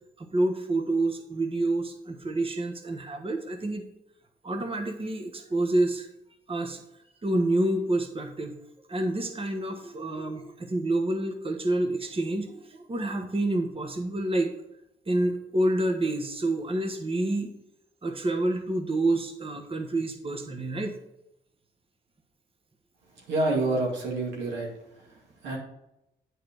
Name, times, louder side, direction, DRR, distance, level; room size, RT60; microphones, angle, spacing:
voice 1, 0.2-3.8 4.4-6.1 6.5-6.8 7.2-8.6 8.9-14.5 15.1-17.5 18.0-21.0, right 1 dB, 30° right, 5 dB, 1.3 m, -28 dB
voice 2, 23.2-24.7 25.4-25.6, right 2 dB, 90° right, -2 dB, 2.1 m, -27 dB
8.7 x 4.7 x 5.2 m, 0.86 s
supercardioid pair, 50°, 18 cm